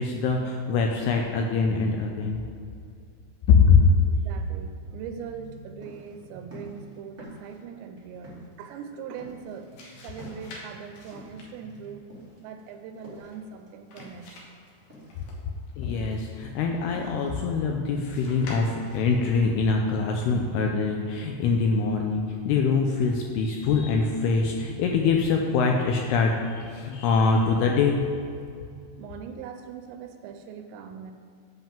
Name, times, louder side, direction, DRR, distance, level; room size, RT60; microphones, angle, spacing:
voice 1, 0.0-2.4 3.5-3.8 15.8-28.0, left 5 dB, 80° left, 2 dB, 2.4 m, -23 dB
voice 2, 4.2-12.1 12.4-14.5 15.2-15.3 29.0-31.1, right 6 dB, 85° right, 7 dB, 2.7 m, -41 dB
sound 1, 5.4-14.5 14.8-19.7, left 1 dB, 25° right, 1.4 m, -48 dB
sound 2, 9.5-15.8 18.0-19.2, left 2 dB, 65° left, 2.4 m, -48 dB
7.9 x 5.5 x 7.2 m, 2.3 s
omnidirectional pair, 5.2 m